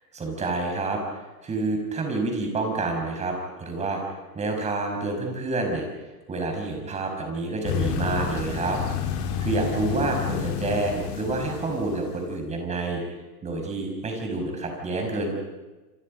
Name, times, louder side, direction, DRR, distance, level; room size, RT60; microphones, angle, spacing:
voice 1, 0.2-4.0 4.3-5.9 6.3-8.8 9.4-13.0 13.4-15.3, right 3 dB, 15° right, 3 dB, 5.7 m, -28 dB
sound 1, 7.7-12.2, left 8 dB, 35° left, 4.1 m, -30 dB
28.0 x 27.5 x 5.4 m, 1.2 s
supercardioid pair, 150°, 47 cm